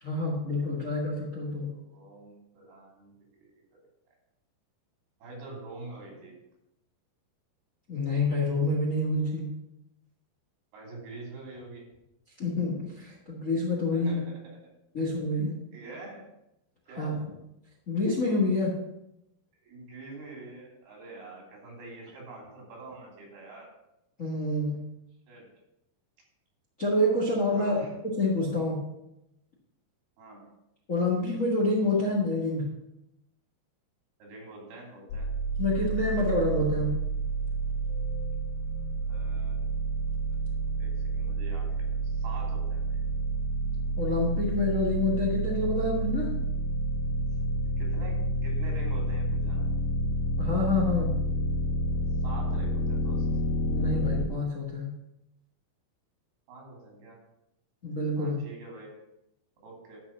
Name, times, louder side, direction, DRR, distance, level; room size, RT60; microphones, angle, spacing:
voice 1, 0.0-1.7 7.9-9.5 12.4-14.2 14.9-15.5 17.0-17.1 17.9-18.7 24.2-24.8 26.8-27.8 28.2-28.8 30.9-32.7 35.6-36.9 44.0-46.3 50.4-51.1 53.7-54.9 57.8-58.4, left 2 dB, 40° left, -3 dB, 1.1 m, -27 dB
voice 2, 1.4-3.5 5.2-6.4 10.7-11.9 13.9-14.6 15.0-15.1 15.7-16.3 16.9-17.3 19.6-23.8 25.3-25.5 27.5-27.9 30.2-30.6 32.0-32.1 34.2-35.3 39.0-39.6 40.7-43.0 47.8-49.8 52.2-53.3 56.5-57.2 58.2-58.9 59.6-60.0, right 2 dB, 90° right, -1 dB, 4.9 m, -45 dB
sound 1, 35.1-54.3, right 1 dB, 75° left, 2.2 m, -29 dB
12.0 x 4.7 x 6.0 m, 0.86 s
omnidirectional pair, 4.3 m